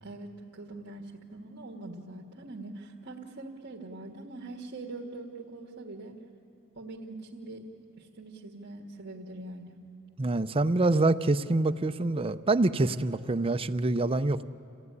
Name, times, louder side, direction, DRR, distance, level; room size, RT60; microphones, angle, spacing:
voice 1, 0.0-6.2 6.7-7.6 8.0-9.8, right 2 dB, 60° right, -3 dB, 1.6 m, -43 dB
voice 2, 10.2-14.4, right 2 dB, 25° right, 9 dB, 0.5 m, -26 dB
27.5 x 16.0 x 9.6 m, 2.7 s
head